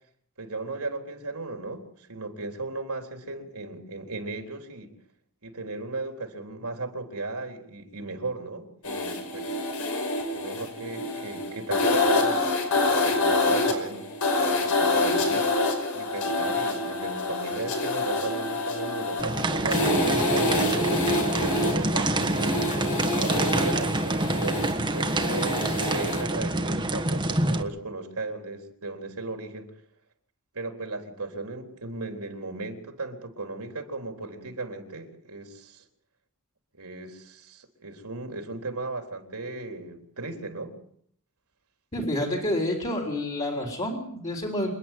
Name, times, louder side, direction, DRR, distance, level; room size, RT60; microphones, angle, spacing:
voice 1, 0.4-5.0 5.4-9.6 10.3-14.1 14.4-22.6 23.2-29.7 30.5-35.9 36.8-40.8, right 3 dB, 90° right, 4 dB, 3.8 m, -36 dB
sound 1, 8.8-26.3, left 2 dB, 80° left, 5.6 m, -27 dB
sound 2, 19.2-27.6, right 1 dB, 20° right, 1.4 m, -27 dB
voice 2, 41.9-44.7, left 1 dB, 30° left, 0 dB, 3.7 m, -28 dB
27.5 x 10.5 x 9.2 m, 0.67 s
head